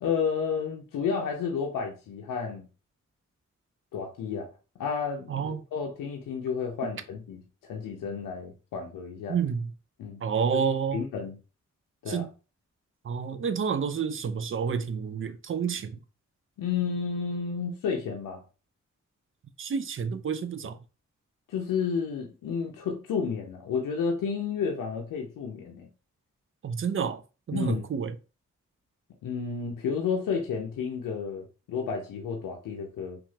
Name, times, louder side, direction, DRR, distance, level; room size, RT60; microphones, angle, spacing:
voice 1, 0.0-2.7 3.9-4.5 4.8-9.4 10.0-10.2 10.5-10.6 10.9-11.4 12.0-12.3 16.6-18.4 21.5-25.9 27.5-27.8 29.2-33.2, left 6 dB, 90° left, 0.5 m, -31 dB
voice 2, 5.3-5.6 9.3-9.7 10.2-11.0 12.1-12.3 13.0-16.0 19.6-20.8 26.6-27.2 27.5-28.1, right 6 dB, 40° right, 0.5 m, -29 dB
2.8 x 2.4 x 2.7 m
supercardioid pair, 40°, 32 cm